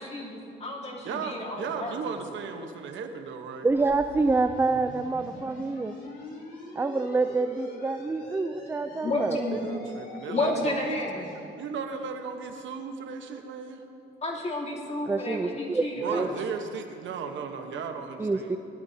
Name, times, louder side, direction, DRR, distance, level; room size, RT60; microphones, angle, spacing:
voice 1, 0.0-2.0 9.0-9.6 10.3-11.3 13.0-13.2 14.2-16.4 17.6-17.8 18.1-18.2, left 2 dB, 35° left, -5 dB, 3.0 m, -31 dB
voice 2, 1.0-3.7 9.6-11.0 11.6-13.8 16.0-18.6, right 5 dB, 70° right, 5 dB, 1.1 m, -36 dB
voice 3, 3.6-6.0 6.8-9.4 15.1-16.3 18.2-18.6, right 3 dB, 10° right, 9 dB, 0.4 m, -27 dB
sound 1, 3.7-11.5, left 2 dB, 70° left, 3.2 m, -45 dB
19.0 x 12.0 x 2.8 m, 2.7 s
cardioid pair, 90°, 20 cm